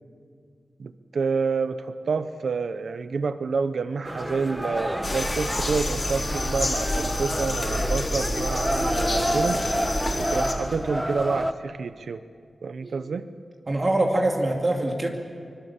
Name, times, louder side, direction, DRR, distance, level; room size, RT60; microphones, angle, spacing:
voice 1, 0.8-9.6 10.2-12.2 12.6-13.3, right 5 dB, 80° right, 11 dB, 0.7 m, -28 dB
sound 1, 4.1-11.5, equal, 5° right, 0.9 m, -29 dB
sound 2, 5.0-10.5, left 1 dB, 35° left, 4.3 m, -28 dB
voice 2, 13.7-15.1, right 1 dB, 40° right, 1 dB, 2.3 m, -24 dB
25.0 x 22.0 x 7.2 m, 2.2 s
wide cardioid pair, 80°, 0 cm